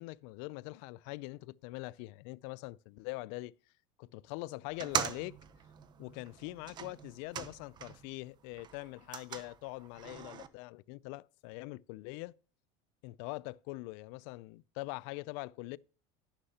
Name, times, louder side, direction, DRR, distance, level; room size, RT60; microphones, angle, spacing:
voice 1, 0.0-3.5 4.0-5.4 6.0-12.3 13.0-15.8, left 21 dB, 70° left, 0.4 m, -43 dB
sound 1, 4.7-8.1 8.5-10.5, right 9 dB, 30° right, 0.7 m, -41 dB
11.0 x 10.0 x 2.8 m
cardioid pair, 150°, 16 cm